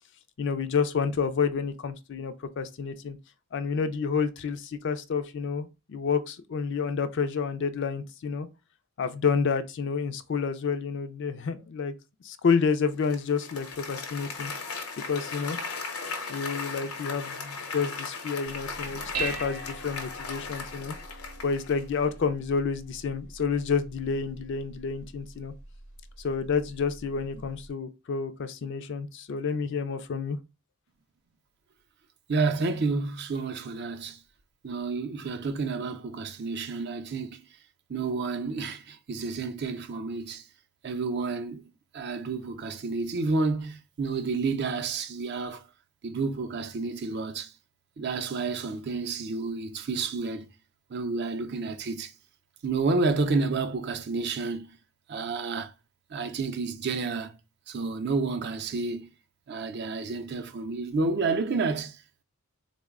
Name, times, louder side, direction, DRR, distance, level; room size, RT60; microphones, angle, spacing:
voice 1, 0.4-3.2 3.5-8.5 9.0-11.9 12.2-14.5 15.1-15.6 16.3-21.0 21.4-25.5 26.2-30.4, left 5 dB, 55° left, 0.4 m, -29 dB
Applause, 13.0-21.9, left 4 dB, 80° left, 0.8 m, -37 dB
Dishes pots and pans, 18.5-27.7, right 4 dB, 85° right, 0.7 m, -42 dB
voice 2, 32.3-34.2 34.6-37.4 37.9-40.4 40.8-41.7 41.9-45.6 46.0-47.5 48.0-50.5 50.9-52.1 52.6-54.8 55.1-55.7 56.1-57.4 57.7-59.1 59.5-62.0, right 4 dB, 50° right, 0.4 m, -30 dB
3.8 x 2.1 x 3.5 m
head